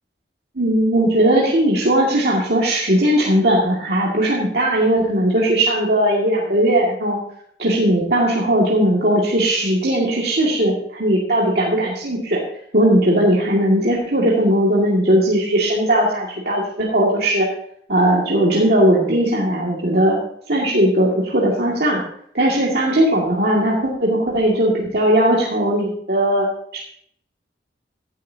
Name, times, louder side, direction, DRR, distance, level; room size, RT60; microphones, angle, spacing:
voice 1, 0.6-7.2 7.6-12.4 12.7-17.5 17.9-20.2 20.5-22.0 22.3-26.5 26.7-26.8, right 1 dB, 60° right, -4 dB, 2.2 m, -18 dB
15.0 x 11.5 x 2.8 m, 0.65 s
head